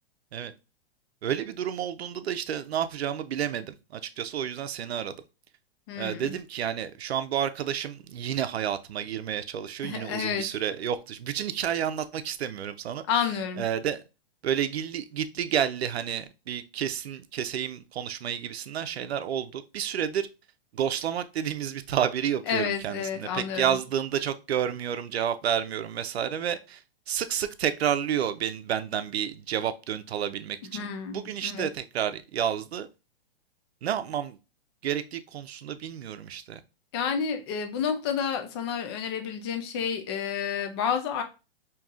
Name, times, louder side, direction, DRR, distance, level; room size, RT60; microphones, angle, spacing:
voice 1, 1.2-5.2 5.9-13.0 13.6-14.0 14.4-20.3 20.7-32.9 33.8-34.4 34.8-36.6, right 9 dB, 85° right, 0.6 m, -30 dB
voice 2, 5.9-6.3 9.8-10.4 13.1-13.6 22.5-23.6 30.7-31.7 36.9-41.2, left 7 dB, 25° left, 0.4 m, -30 dB
5.3 x 2.8 x 2.4 m
hypercardioid pair, 150°, 31 cm